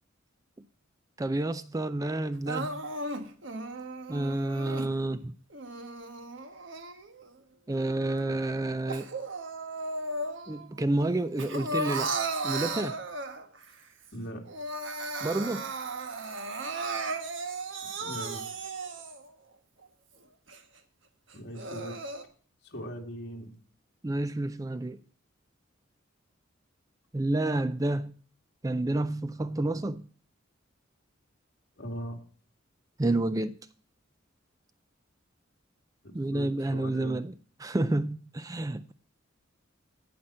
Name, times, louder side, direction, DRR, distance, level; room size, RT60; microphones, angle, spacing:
voice 1, 1.2-2.8 4.1-5.3 7.7-9.1 10.5-12.1 12.4-13.0 15.2-15.7 24.0-25.0 27.1-28.1 28.6-30.1 33.0-33.6 36.1-37.3 37.6-38.9, right 2 dB, 15° right, 0.4 m, -29 dB
Crying sobbing, 2.5-4.9 5.5-7.3 7.7-10.7 11.0-13.6 14.1-14.2 14.4-19.3 19.8-19.9 20.5-20.6 21.3-22.2, right 2 dB, 65° right, 1.4 m, -36 dB
voice 2, 14.1-14.4 18.0-18.5 21.3-22.0 22.6-23.5 31.8-32.2 36.0-37.2, equal, 55° left, 2.4 m, -40 dB
17.5 x 5.9 x 4.3 m
head